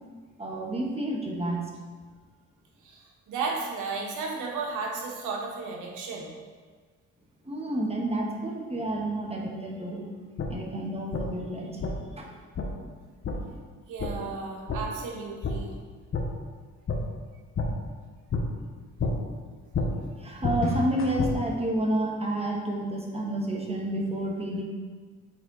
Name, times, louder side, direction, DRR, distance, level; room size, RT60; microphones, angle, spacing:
voice 1, 0.4-1.6 7.4-10.1 10.5-11.8 12.2-12.3 20.2-24.6, right 1 dB, 20° right, -1 dB, 1.5 m, -30 dB
voice 2, 2.8-6.3 13.9-15.7, right 4 dB, 90° right, -1 dB, 1.4 m, -34 dB
sound 1, 10.4-10.5 11.1-11.2 11.8-11.9 12.5-12.7 13.2-13.4 14.0-14.1 14.7-14.8 15.4-15.5 16.1-16.2 16.9-17.0 17.5-17.7 18.3-18.4 19.0-19.1 19.7-19.9 20.4-21.3, left 4 dB, 45° left, 1.1 m, -28 dB
7.4 x 4.4 x 4.1 m, 1.5 s
cardioid pair, 90°, 30 cm